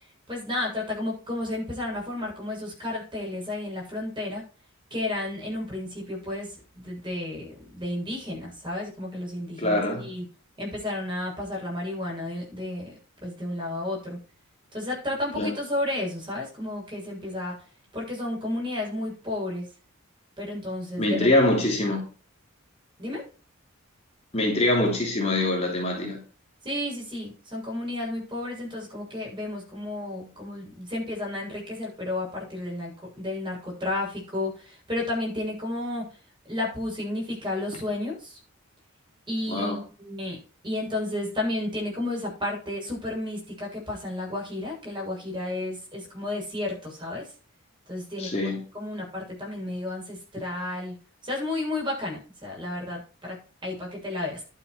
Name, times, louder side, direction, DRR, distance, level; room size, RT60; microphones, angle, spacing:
voice 1, 0.3-4.4 4.9-10.2 10.6-14.2 14.7-17.5 17.9-19.7 20.4-21.5 23.0-23.2 26.6-36.1 36.5-38.4 39.3-47.3 47.9-50.9 51.2-53.4 53.6-54.4, left 1 dB, 20° right, 7.7 m, -32 dB
voice 2, 9.6-10.1 15.4-15.5 21.0-22.0 24.3-26.2 39.5-39.8 48.2-48.6, left 1 dB, 30° left, 3.1 m, -24 dB
11.5 x 8.2 x 5.0 m
head